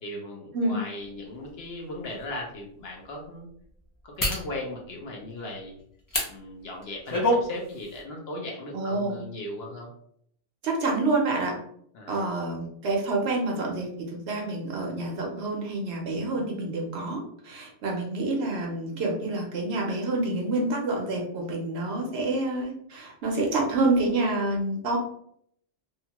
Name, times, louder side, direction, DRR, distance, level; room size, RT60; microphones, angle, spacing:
voice 1, 0.0-3.5 4.0-5.8 6.3-9.9 11.9-12.3, left 1 dB, 60° left, 0 dB, 0.8 m, -37 dB
sound 1, 1.4-1.5 2.1-2.2 4.2-4.5 6.1-6.3 6.8-7.4 7.8-8.0, left 1 dB, 35° left, 0.3 m, -25 dB
voice 2, 8.7-9.2 10.6-11.6 12.1-25.0, right 2 dB, 65° right, 0 dB, 0.8 m, -28 dB
2.7 x 2.2 x 2.8 m, 0.67 s
omnidirectional pair, 1.3 m